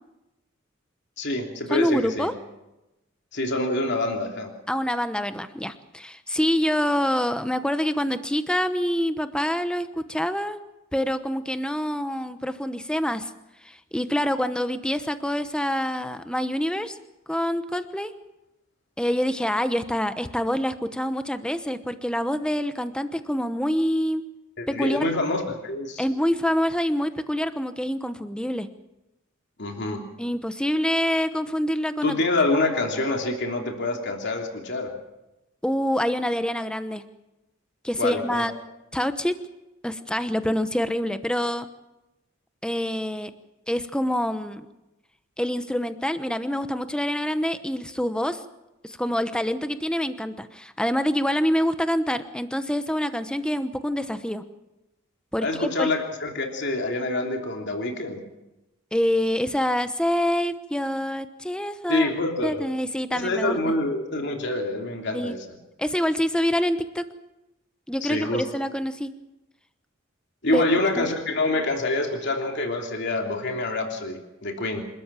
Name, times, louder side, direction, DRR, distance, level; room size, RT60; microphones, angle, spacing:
voice 1, 1.2-2.3 3.3-4.5 24.6-26.0 29.6-30.1 32.0-34.9 38.0-38.4 55.4-58.3 61.9-62.6 63.1-65.4 68.0-68.4 70.4-74.8, left 2 dB, 55° left, 2 dB, 3.1 m, -26 dB
voice 2, 1.7-2.3 4.7-10.6 10.9-13.3 13.6-17.0 17.3-18.1 19.0-24.2 24.7-25.1 26.0-28.7 30.2-32.2 35.6-37.0 37.8-38.5 38.9-39.4 39.8-41.7 42.6-43.3 43.7-44.7 45.4-48.4 48.8-54.4 55.3-55.9 58.9-62.1 62.4-63.7 65.1-65.4 65.8-67.0 67.9-68.3 68.5-69.1 70.5-70.6 71.0-71.1, equal, 5° left, 10 dB, 1.0 m, -26 dB
27.0 x 13.0 x 7.6 m, 0.97 s
head